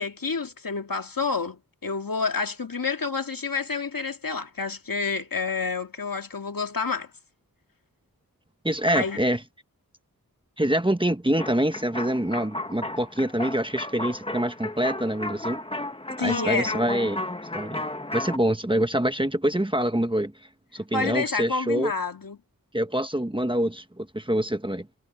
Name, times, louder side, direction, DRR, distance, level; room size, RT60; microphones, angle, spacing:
voice 1, 0.0-7.1 8.9-9.2 16.2-16.8 20.9-22.4, left 4 dB, 70° left, 2.1 m, -29 dB
voice 2, 8.6-9.4 10.6-15.6 16.2-17.2 17.5-17.8 18.1-20.3 20.7-21.9 22.7-24.9, right 1 dB, 15° right, 1.2 m, -25 dB
sound 1, 11.4-18.4, left 1 dB, 15° left, 1.2 m, -34 dB
wide cardioid pair, 60°, 36 cm